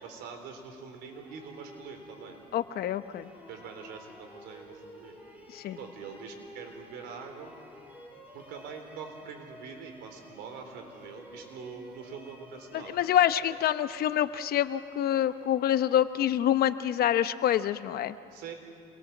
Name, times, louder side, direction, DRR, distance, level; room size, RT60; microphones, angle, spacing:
voice 1, 0.0-2.4 3.5-5.2 5.8-7.5 8.3-13.0 18.3-18.5, right 6 dB, 90° right, 4 dB, 3.8 m, -44 dB
sound 1, 1.1-16.2, left 1 dB, 10° right, 7.1 m, -51 dB
voice 2, 2.5-3.3 5.5-5.8 12.7-18.2, left 11 dB, 65° left, 12 dB, 0.9 m, -26 dB
27.5 x 22.0 x 7.3 m, 2.6 s
cardioid pair, 110°, 17 cm